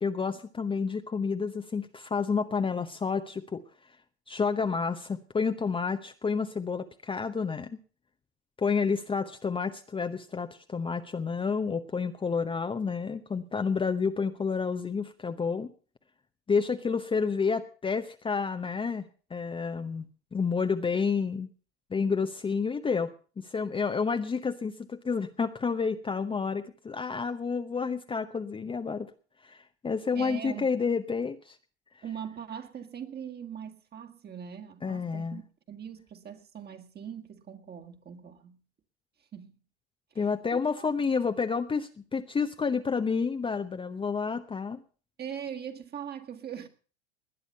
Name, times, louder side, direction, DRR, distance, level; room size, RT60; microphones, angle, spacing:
voice 1, 0.0-3.6 4.3-7.8 8.6-15.7 16.5-20.0 20.3-21.5 21.9-29.1 29.4-31.6 34.8-35.4 40.2-44.8, left 5 dB, 15° left, 0.9 m, -30 dB
voice 2, 30.1-30.7 32.0-38.6 39.3-39.5 40.2-40.3 40.8-40.9 45.2-46.7, right 8 dB, 30° right, 1.9 m, -41 dB
19.5 x 9.8 x 5.6 m
hypercardioid pair, 90°, 34 cm